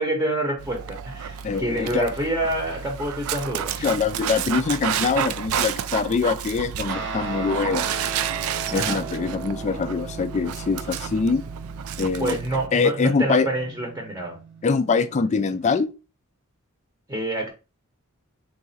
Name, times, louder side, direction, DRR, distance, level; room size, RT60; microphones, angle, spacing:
voice 1, 0.0-3.9 8.7-9.0 12.2-14.4 17.1-17.5, right 1 dB, 15° right, 0.8 m, -27 dB
Dog, 0.6-12.7, right 8 dB, 75° right, 0.3 m, -31 dB
voice 2, 1.4-2.1 3.8-7.9 8.7-11.4 12.0-12.4 12.7-13.5 14.6-15.9, left 5 dB, 30° left, 0.3 m, -23 dB
Guitar, 6.9-15.6, right 4 dB, 55° right, 0.7 m, -37 dB
3.9 x 2.4 x 4.0 m
head